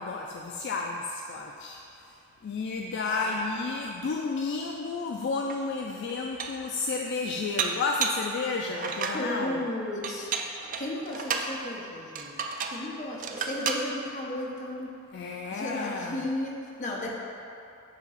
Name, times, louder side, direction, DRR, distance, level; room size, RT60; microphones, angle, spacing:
voice 1, 0.0-2.1 2.4-9.6 15.1-16.2, left 4 dB, 55° left, 1 dB, 0.3 m, -32 dB
voice 2, 3.1-3.4 9.1-10.3 10.8-12.3 12.7-14.9 15.5-17.1, left 1 dB, 35° left, -2 dB, 0.8 m, -34 dB
Dishes pots and pans, 5.5-5.6 6.1-6.7 7.6-8.3 8.7-9.2 10.0-11.5 12.1-12.8 13.2-13.9, right 5 dB, 40° right, 0.4 m, -32 dB
6.7 x 2.9 x 5.6 m, 2.7 s
head